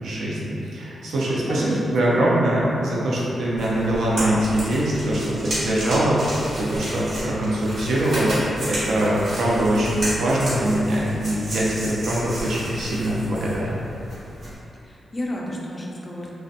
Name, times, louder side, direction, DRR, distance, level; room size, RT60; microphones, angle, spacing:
voice 1, 0.0-6.3 6.6-13.8, right 1 dB, 80° right, -6 dB, 0.5 m, -23 dB
voice 2, 1.5-2.3 14.8-16.3, left 1 dB, 25° left, -3 dB, 0.3 m, -32 dB
sound 1, 3.6-14.6, equal, 60° right, 1.4 m, -32 dB
2.6 x 2.1 x 2.5 m, 2.8 s
wide cardioid pair, 160°, 0 cm